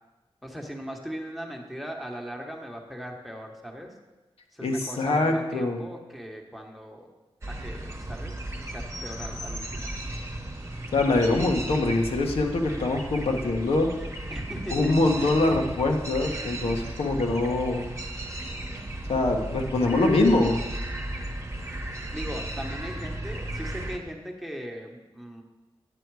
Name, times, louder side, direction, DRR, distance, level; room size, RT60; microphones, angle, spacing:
voice 1, 0.4-3.9 4.5-7.1 7.6-8.4 8.7-9.9 14.3-14.9 22.1-25.4, equal, ahead, 1 dB, 1.1 m, -38 dB
voice 2, 4.6-5.8 10.9-13.9 14.7-17.9 19.1-20.6, left 2 dB, 80° left, 1 dB, 1.2 m, -24 dB
sound 1, 7.4-24.0, right 1 dB, 25° right, 1.1 m, -35 dB
9.9 x 8.0 x 4.7 m, 1.1 s
wide cardioid pair, 125°, 10 cm